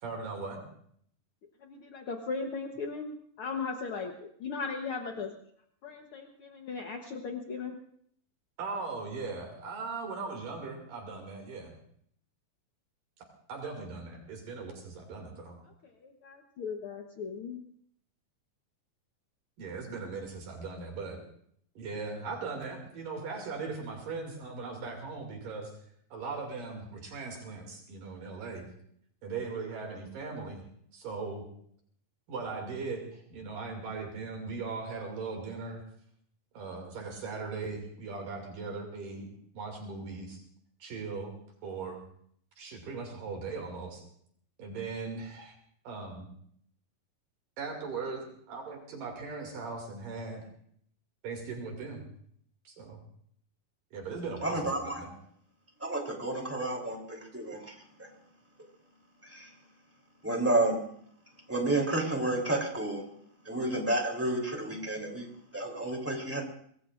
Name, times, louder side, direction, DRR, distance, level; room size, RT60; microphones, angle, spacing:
voice 1, 0.0-0.6 8.6-11.7 13.5-15.6 19.6-21.2 21.8-25.7 26.1-28.7 29.2-30.6 30.9-31.4 32.3-35.8 36.5-39.3 39.5-40.4 40.8-41.4 41.6-42.0 42.6-44.0 44.6-45.5 45.8-46.3 47.6-50.5 51.2-52.0 52.7-53.0 53.9-55.1, right 4 dB, 65° right, 1 dB, 4.0 m, -39 dB
voice 2, 1.6-5.3 5.8-7.8 15.8-17.6, left 4 dB, 75° left, 2 dB, 1.2 m, -37 dB
voice 3, 54.4-55.0 55.8-57.7 59.2-59.5 60.2-60.8 61.5-63.0 63.4-65.3 65.5-66.4, right 2 dB, 5° right, 0 dB, 2.7 m, -30 dB
25.0 x 20.0 x 2.5 m, 0.66 s
omnidirectional pair, 4.2 m